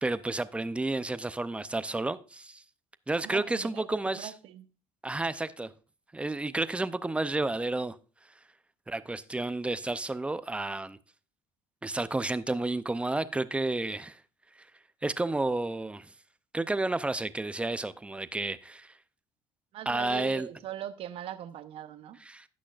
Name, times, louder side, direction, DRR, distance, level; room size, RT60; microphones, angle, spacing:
voice 1, 0.0-2.6 3.1-4.3 5.0-5.7 6.1-8.0 8.9-11.0 11.8-14.2 15.0-16.1 16.5-18.9 19.9-20.5 22.2-22.5, right 2 dB, 10° right, 0.5 m, -31 dB
voice 2, 3.2-4.7 19.7-22.2, right 11 dB, 60° right, 0.8 m, -41 dB
16.0 x 6.2 x 2.4 m
supercardioid pair, 95°, 11 cm